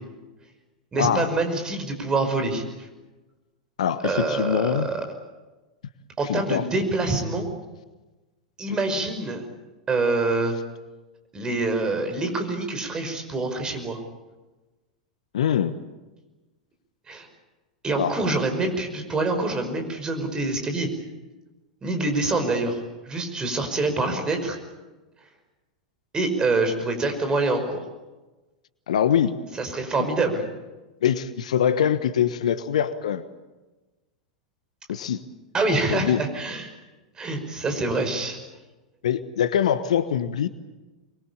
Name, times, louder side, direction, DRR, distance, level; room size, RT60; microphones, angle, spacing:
voice 1, 0.9-2.9 4.0-5.0 6.2-7.5 8.6-9.4 9.9-10.6 11.3-14.0 17.1-17.3 17.8-20.9 21.8-22.8 23.1-24.6 26.1-27.8 29.6-30.4 35.5-36.7 37.2-38.4, right 2 dB, 20° right, 6 dB, 5.6 m, -25 dB
voice 2, 3.8-4.9 6.3-6.7 8.7-8.8 15.3-15.7 18.0-18.1 28.9-29.4 31.0-33.2 34.9-35.2 35.9-36.2 39.0-40.5, left 9 dB, 65° left, 13 dB, 1.3 m, -23 dB
25.0 x 22.5 x 8.6 m, 1.2 s
figure-of-eight pair, 90°, 4 cm